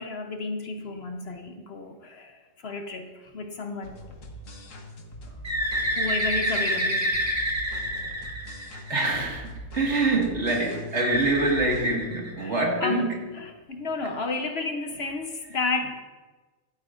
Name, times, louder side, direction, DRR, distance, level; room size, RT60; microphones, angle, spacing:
voice 1, 0.0-3.9 6.0-7.1 9.8-9.9 12.4-12.5 12.8-13.1 13.3-15.9, left 3 dB, 55° left, 1.0 m, -32 dB
sound 1, 3.8-11.9, equal, 75° left, 1.6 m, -42 dB
Bird, 5.4-9.2 10.9-12.7, equal, 20° right, 1.3 m, -28 dB
voice 2, 5.6-5.9 8.1-8.3 8.9-13.2 14.0-14.1, right 2 dB, 60° right, 2.1 m, -26 dB
14.5 x 12.0 x 2.5 m
omnidirectional pair, 1.4 m